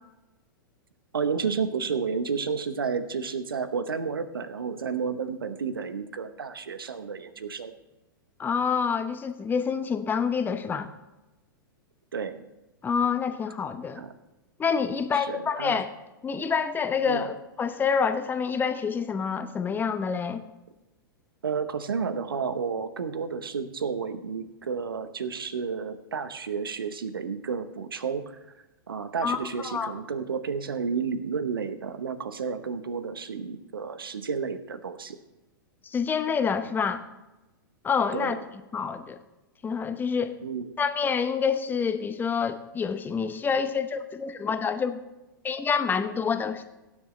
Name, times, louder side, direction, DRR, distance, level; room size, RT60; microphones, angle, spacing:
voice 1, 1.1-7.7 12.1-12.4 13.9-14.1 15.1-15.8 17.1-17.3 21.4-28.2 28.9-35.2 38.1-38.4 40.4-40.7, right 5 dB, 80° right, 11 dB, 1.0 m, -31 dB
voice 2, 8.4-10.9 12.8-14.0 14.6-15.9 16.2-20.4 29.2-29.9 35.8-37.0 37.8-38.4 38.7-39.2 39.6-40.4 40.8-45.0 45.4-46.7, left 6 dB, 15° left, 9 dB, 0.9 m, -27 dB
16.5 x 9.7 x 3.2 m, 1.0 s
figure-of-eight pair, 105°, 12 cm